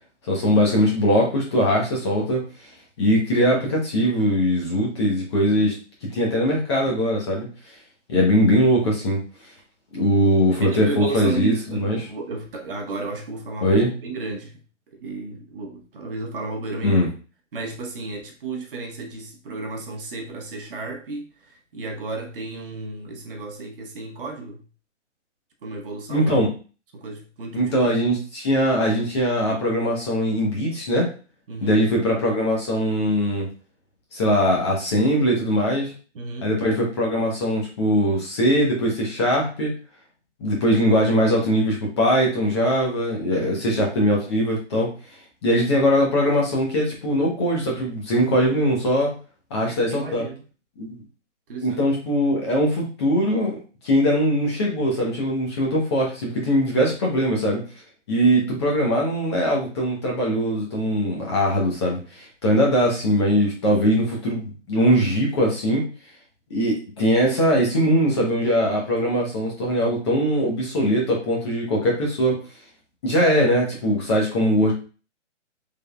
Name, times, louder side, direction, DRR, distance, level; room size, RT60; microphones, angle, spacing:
voice 1, 0.3-2.4 3.0-5.7 6.1-7.5 8.1-9.2 9.9-12.0 13.6-13.9 16.8-17.1 26.1-26.5 27.5-31.1 31.6-33.5 34.1-35.9 36.4-39.7 40.4-44.9 45.4-49.1 49.5-50.3 50.8-51.0 51.6-53.6 53.8-57.6 58.1-65.8 66.5-72.4 73.0-74.7, equal, 20° left, -2 dB, 0.7 m, -21 dB
voice 2, 10.6-14.6 14.9-17.0 17.5-24.7 25.6-26.5 26.9-27.9 31.5-31.8 36.1-36.5 43.3-43.6 49.6-50.4 51.5-51.8, right 3 dB, 50° right, 2 dB, 0.8 m, -33 dB
3.4 x 3.4 x 2.2 m, 0.35 s
hypercardioid pair, 155°, 37 cm